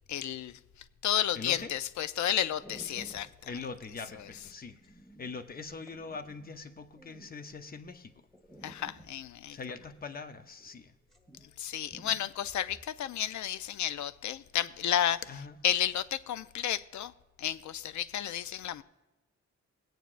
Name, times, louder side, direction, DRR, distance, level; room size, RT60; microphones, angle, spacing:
voice 1, 0.1-0.6 1.0-3.5 8.6-9.6 11.6-17.1 17.4-18.8, left 10 dB, 75° left, 0.5 m, -32 dB
sound 1, 1.1-1.6 2.2-2.3 2.5-7.8 8.3-10.8 11.0-11.6 11.9-12.9, right 1 dB, ahead, 1.4 m, -55 dB
voice 2, 1.3-1.7 3.5-4.7 5.2-8.1 9.5-10.9 15.3-15.6, left 4 dB, 30° left, 0.7 m, -42 dB
18.5 x 9.1 x 2.5 m
wide cardioid pair, 140°, 29 cm